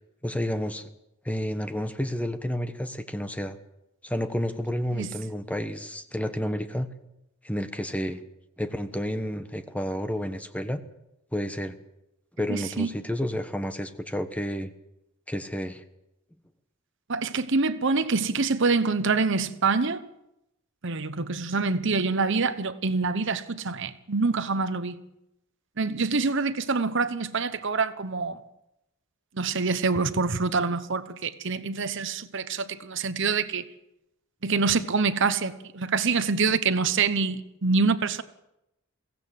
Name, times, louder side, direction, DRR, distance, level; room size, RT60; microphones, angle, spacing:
voice 1, 0.2-0.9 1.2-3.6 4.0-6.9 7.4-8.2 8.6-10.8 11.3-11.7 12.4-14.7 15.3-15.8, equal, 5° left, 1.2 m, -30 dB
voice 2, 12.5-12.9 17.1-20.0 20.8-25.0 25.8-28.4 29.3-33.6 34.4-38.2, right 4 dB, 60° right, 1.0 m, -26 dB
23.0 x 17.0 x 7.6 m
head